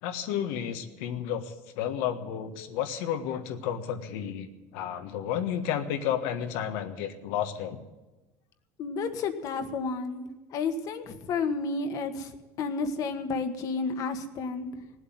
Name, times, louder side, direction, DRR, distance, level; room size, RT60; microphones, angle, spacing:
voice 1, 0.0-7.8, left 9 dB, 90° left, 7 dB, 1.4 m, -32 dB
voice 2, 8.8-10.2 10.5-12.3 12.6-14.7, left 4 dB, 55° left, 8 dB, 1.5 m, -31 dB
18.0 x 8.0 x 9.4 m, 1.1 s
cardioid pair, 135°, 7 cm